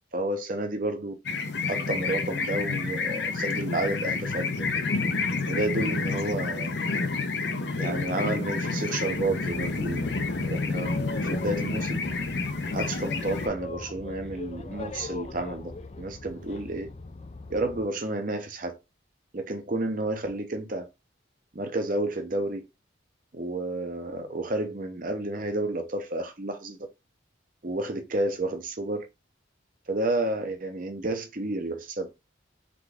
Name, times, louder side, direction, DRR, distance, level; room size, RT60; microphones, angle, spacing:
voice 1, 0.1-1.1 1.7-4.7 5.5-6.8 7.8-10.1 10.4-12.0 12.7-16.9 17.5-18.8 19.3-20.9 21.5-22.6 23.3-26.8 27.6-29.1 29.9-32.1, right 2 dB, 45° right, 0.8 m, -31 dB
sound 1, 1.2-13.5, left 3 dB, 60° left, 0.7 m, -29 dB
Boat Water vehicle, 9.1-17.9, left 3 dB, 35° left, 0.4 m, -40 dB
3.8 x 3.6 x 3.5 m
head